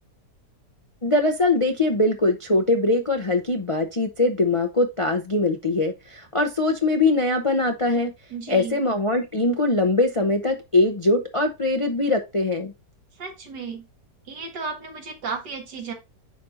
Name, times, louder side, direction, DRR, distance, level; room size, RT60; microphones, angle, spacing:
voice 1, 1.0-8.1 8.5-12.7, left 2 dB, 40° left, 4 dB, 0.4 m, -22 dB
voice 2, 8.3-8.8 13.2-13.9 14.3-15.9, right 5 dB, 80° right, 3 dB, 2.2 m, -34 dB
10.0 x 4.2 x 2.5 m, 0.25 s
omnidirectional pair, 1.8 m